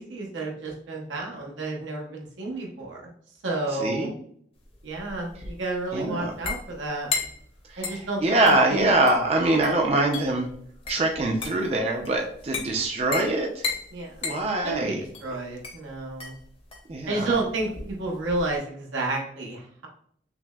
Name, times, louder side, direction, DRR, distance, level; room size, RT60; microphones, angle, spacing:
voice 1, 0.0-3.0 3.4-4.2 4.8-7.1 7.8-8.4 8.7-8.9 13.9-14.3 14.6-16.4 17.1-19.9, right 2 dB, 90° right, -1 dB, 0.9 m, -31 dB
sound 1, 4.6-18.6, left 4 dB, 30° left, 0.6 m, -36 dB
voice 2, 5.9-6.3 7.7-10.5 10.9-13.6 14.2-15.0 16.9-17.3, right 2 dB, 35° right, 1 dB, 0.4 m, -24 dB
5.7 x 2.0 x 2.2 m, 0.64 s
head